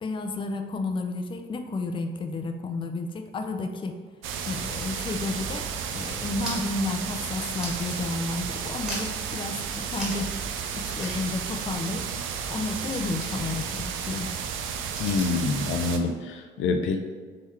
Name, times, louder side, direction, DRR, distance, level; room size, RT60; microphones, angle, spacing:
voice 1, 0.0-3.9 4.4-5.6 5.9-10.3 10.7-12.1 12.5-14.3, left 3 dB, 25° left, 5 dB, 0.4 m, -31 dB
sound 1, 4.2-16.0, right 7 dB, 80° right, 0.4 m, -33 dB
sound 2, 5.4-8.4 8.7-9.3 9.8-10.4 10.6-10.7 11.0-15.5, right 1 dB, 5° right, 1.4 m, -41 dB
voice 2, 15.0-17.0, left 4 dB, 80° left, 5 dB, 0.5 m, -26 dB
3.9 x 3.1 x 4.2 m, 1.5 s
cardioid pair, 90°, 20 cm